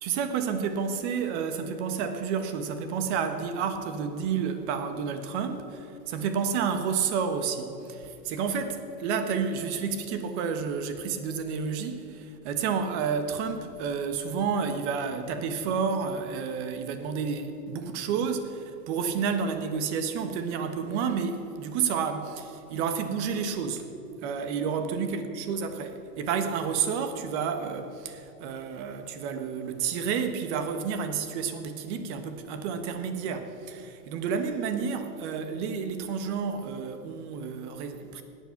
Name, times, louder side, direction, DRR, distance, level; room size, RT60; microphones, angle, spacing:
voice 1, 0.0-23.9 24.2-38.2, right 6 dB, 45° right, 8 dB, 1.4 m, -30 dB
16.5 x 10.5 x 5.9 m, 3.0 s
supercardioid pair, 150°, 49 cm